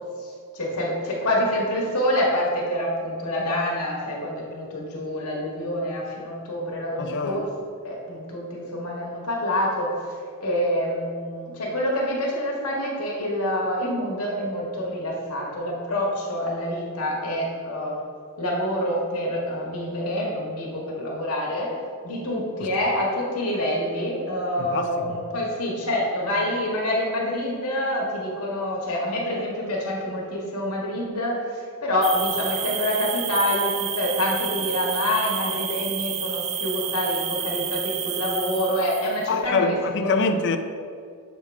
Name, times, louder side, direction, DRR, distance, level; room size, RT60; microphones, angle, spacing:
voice 1, 0.2-7.5 7.8-9.9 10.4-18.0 18.4-21.7 22.0-39.8 40.0-40.2, left 1 dB, 90° left, -3 dB, 1.4 m, -26 dB
voice 2, 7.0-7.4 22.6-22.7 24.6-25.2 39.3-40.6, left 4 dB, 50° left, 8 dB, 0.4 m, -25 dB
sound 1, 32.0-39.3, right 8 dB, 30° right, 0.4 m, -30 dB
7.0 x 3.7 x 4.6 m, 2.2 s
head